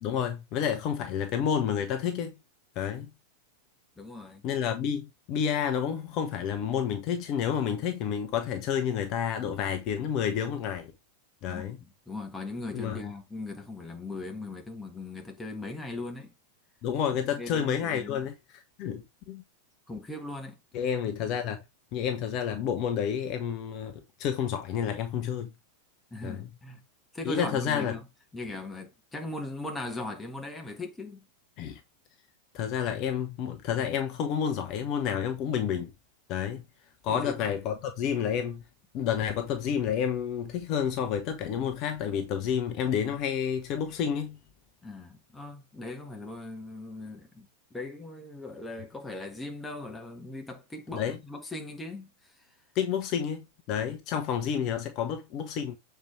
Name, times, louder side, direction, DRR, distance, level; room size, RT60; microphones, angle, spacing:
voice 1, 0.0-2.3 2.8-3.1 4.4-10.9 11.4-11.8 12.7-13.1 16.8-18.3 18.8-19.4 20.7-21.6 21.9-25.5 26.2-26.5 27.2-27.9 31.6-31.8 32.5-35.9 36.3-36.6 37.0-38.6 38.9-44.4 50.9-51.2 52.7-55.8, left 8 dB, 40° left, 0.9 m, -30 dB
voice 2, 4.0-4.4 11.5-16.3 17.3-18.3 19.9-20.6 26.1-26.8 27.1-28.1 28.3-31.3 37.1-37.5 44.8-52.5, left 2 dB, 10° left, 1.7 m, -39 dB
7.1 x 4.5 x 3.5 m
figure-of-eight pair, 90°, 0 cm